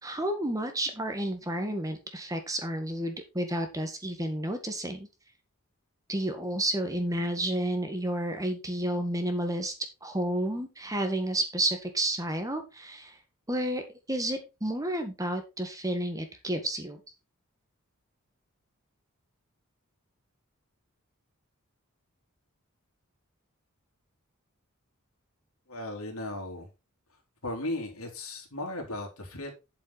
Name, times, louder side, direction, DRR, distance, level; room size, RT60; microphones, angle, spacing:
voice 1, 0.0-5.1 6.1-9.7 10.0-13.2 13.5-13.8 14.1-17.0, right 1 dB, 15° right, 6 dB, 1.7 m, -31 dB
voice 2, 25.7-26.7 27.4-29.5, left 1 dB, 90° left, 1 dB, 3.5 m, -36 dB
8.6 x 7.2 x 4.1 m, 0.27 s
head